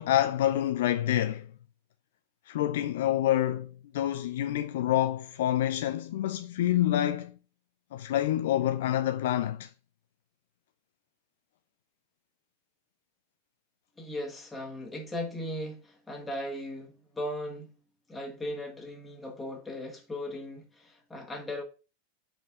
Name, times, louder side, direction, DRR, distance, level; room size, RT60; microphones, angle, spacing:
voice 1, 0.0-1.5 2.5-7.4 7.9-9.7, left 12 dB, 55° left, 0.4 m, -27 dB
voice 2, 14.0-17.7 18.1-21.6, left 1 dB, 10° left, 2.0 m, -37 dB
5.3 x 4.3 x 6.0 m
figure-of-eight pair, 90°, 0 cm